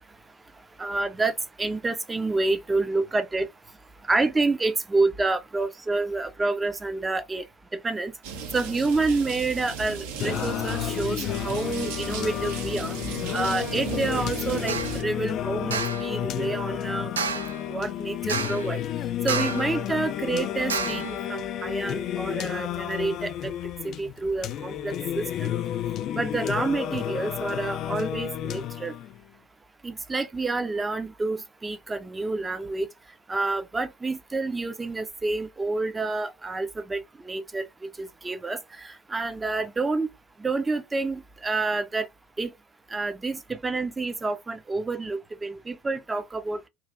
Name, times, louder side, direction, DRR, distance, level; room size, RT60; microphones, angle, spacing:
voice 1, 0.8-3.5 4.1-7.4 7.8-8.1 8.5-13.0 13.3-17.1 17.7-18.8 19.2-23.5 24.0-25.5 26.1-28.9 29.8-32.9 33.3-37.6 38.0-40.1 40.4-42.1 42.4-42.5 42.9-46.6, right 3 dB, 15° right, 0.5 m, -28 dB
sound 1, 8.2-15.0, right 5 dB, 65° right, 0.7 m, -35 dB
Singing, 10.2-29.2, left 11 dB, 45° left, 0.3 m, -31 dB
sound 2, 14.7-15.0 15.7-16.1 17.2-17.6 18.3-18.7 19.3-19.7 20.7-21.1, right 6 dB, 80° right, 0.3 m, -30 dB
3.1 x 2.5 x 2.5 m
figure-of-eight pair, 70°, 0 cm